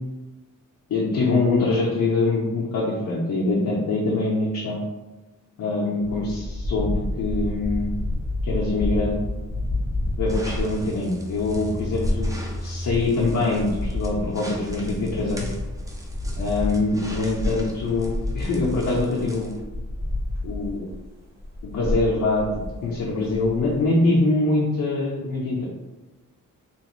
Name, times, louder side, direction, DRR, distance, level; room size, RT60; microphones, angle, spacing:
voice 1, 0.9-4.8 5.6-8.0 8.4-9.2 10.2-12.3 12.6-15.5 16.4-19.5 20.4-20.9 21.6-25.7, left 2 dB, 70° left, -5 dB, 0.6 m, -24 dB
sound 1, 6.0-21.0 21.4-23.8, left 1 dB, 55° right, 1.1 m, -30 dB
sound 2, 10.3-19.6, equal, 10° right, 0.3 m, -38 dB
3.0 x 2.4 x 3.0 m, 1.1 s
wide cardioid pair, 175°, 32 cm